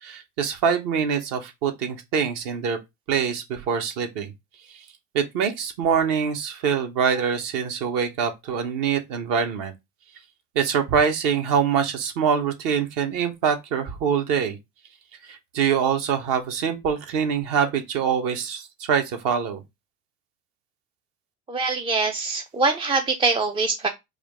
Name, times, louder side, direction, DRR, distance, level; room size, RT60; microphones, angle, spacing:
voice 1, 0.0-2.8 3.1-4.3 4.7-4.8 5.1-9.7 10.5-14.6 15.2-19.6, right 7 dB, 55° right, 1.2 m, -24 dB
voice 2, 21.5-23.9, right 3 dB, 15° right, 0.4 m, -23 dB
4.9 x 2.5 x 3.5 m
figure-of-eight pair, 70°, 40 cm